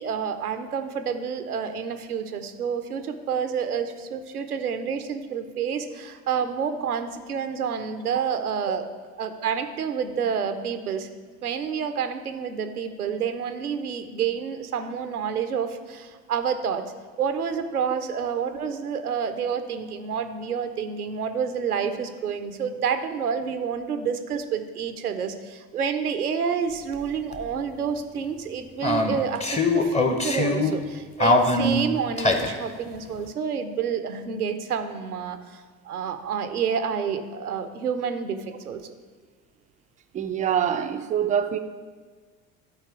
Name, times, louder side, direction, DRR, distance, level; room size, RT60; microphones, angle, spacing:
voice 1, 0.0-8.9 9.2-11.1 11.4-16.8 17.2-38.9, right 7 dB, 85° right, 0.6 m, -29 dB
sound 1, 26.9-27.0 27.3-27.4 28.8-30.9 31.2-32.6, left 2 dB, 15° left, 0.8 m, -22 dB
voice 2, 40.1-41.6, right 9 dB, 20° right, 0.3 m, -25 dB
11.5 x 4.4 x 4.7 m
figure-of-eight pair, 65°, 44 cm